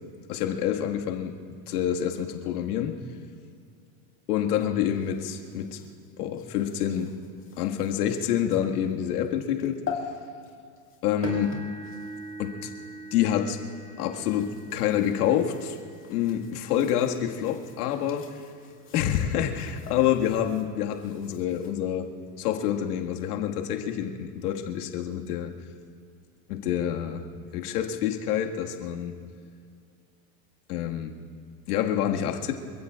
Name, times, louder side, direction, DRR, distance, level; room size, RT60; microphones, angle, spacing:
voice 1, 0.3-1.4 1.7-3.0 4.3-5.8 6.2-7.1 7.6-9.8 11.0-11.6 12.4-12.7 13.1-13.6 14.0-15.8 16.1-18.3 18.9-22.1 22.4-25.5 26.5-27.2 27.5-29.1 30.7-31.1 31.7-32.5, left 10 dB, 85° left, 2 dB, 2.0 m, -27 dB
sound 1, 4.9-13.3 13.9-21.7, left 6 dB, 30° left, 2.1 m, -44 dB
sound 2, 11.2-19.3 19.9-20.1 20.6-20.7 22.1-22.2, right 5 dB, 40° right, 2.5 m, -43 dB
27.5 x 15.5 x 2.5 m, 2.3 s
supercardioid pair, 145°, 44 cm